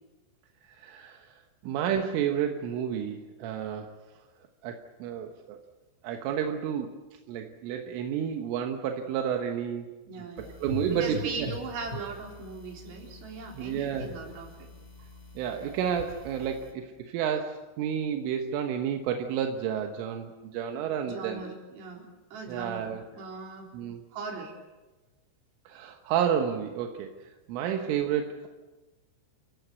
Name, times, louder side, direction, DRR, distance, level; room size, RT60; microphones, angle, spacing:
voice 1, 0.6-4.0 4.6-5.6 6.0-7.0 7.3-9.9 10.2-11.5 13.6-14.1 15.4-21.5 22.5-23.0 23.7-24.0 25.7-28.5, right 8 dB, 85° right, 4 dB, 3.8 m, -31 dB
voice 2, 10.1-10.6 10.9-14.7 21.0-23.7 24.1-24.5, right 4 dB, 60° right, 0 dB, 5.9 m, -39 dB
sound 1, 10.4-16.7, left 3 dB, 10° left, 4.1 m, -43 dB
30.0 x 16.0 x 8.2 m, 1.2 s
omnidirectional pair, 5.5 m